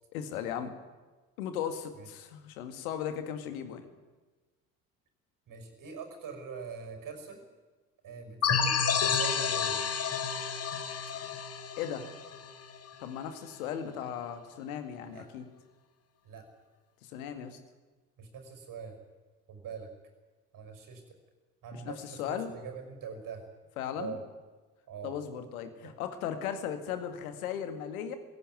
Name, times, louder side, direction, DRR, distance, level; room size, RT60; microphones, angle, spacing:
voice 1, 0.1-0.7 1.4-3.9 11.8-12.1 13.0-15.5 17.0-17.6 21.7-22.5 23.8-24.2 25.0-28.2, left 9 dB, 65° left, 8 dB, 2.2 m, -37 dB
voice 2, 5.5-7.4 8.0-9.8 15.1-15.3 16.2-16.4 18.2-19.0 19.5-19.9 20.5-21.2 21.6-23.4 23.9-24.2 24.9-25.2, right 5 dB, 45° right, 5 dB, 5.9 m, -43 dB
sound 1, 8.4-12.9, left 6 dB, 30° left, 1.8 m, -30 dB
20.0 x 16.5 x 9.5 m, 1.3 s
figure-of-eight pair, 55°, 45 cm